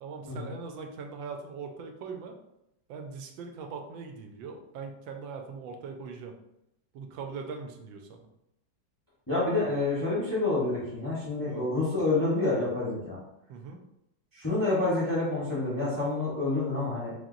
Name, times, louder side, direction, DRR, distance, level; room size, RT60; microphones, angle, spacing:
voice 1, 0.0-2.4 2.9-6.4 6.9-8.2 11.5-11.7 13.5-13.8, right 5 dB, 80° right, 4 dB, 1.3 m, -41 dB
voice 2, 9.3-13.2 14.3-17.1, left 2 dB, 15° left, -7 dB, 0.6 m, -28 dB
3.6 x 2.7 x 3.7 m, 0.84 s
omnidirectional pair, 2.1 m